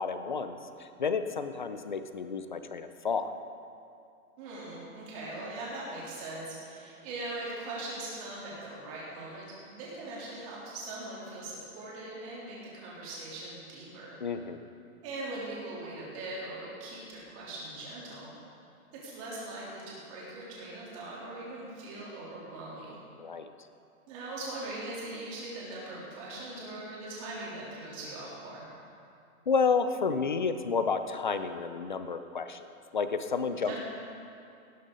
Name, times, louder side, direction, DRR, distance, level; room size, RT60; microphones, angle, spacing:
voice 1, 0.0-3.4 14.2-14.6 23.2-23.5 29.5-32.7 32.9-33.8, left 5 dB, 35° left, 10 dB, 0.5 m, -31 dB
voice 2, 4.4-14.2 15.0-18.3 18.9-23.0 24.1-28.7 33.6-33.8, right 2 dB, 25° right, -6 dB, 3.3 m, -41 dB
17.5 x 12.0 x 3.9 m, 2.5 s
hypercardioid pair, 170°, 44 cm